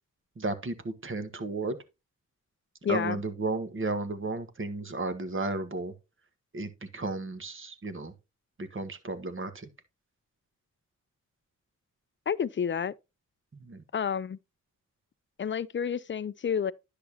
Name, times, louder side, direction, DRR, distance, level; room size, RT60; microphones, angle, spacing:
voice 1, 0.4-1.8 2.9-5.9 6.5-8.1 8.6-9.7 13.5-13.8, right 3 dB, 40° right, 1.5 m, -33 dB
voice 2, 2.8-3.2 12.3-12.9 13.9-14.4 15.4-16.7, left 7 dB, 35° left, 0.5 m, -30 dB
10.0 x 6.9 x 2.8 m
supercardioid pair, 45°, 32 cm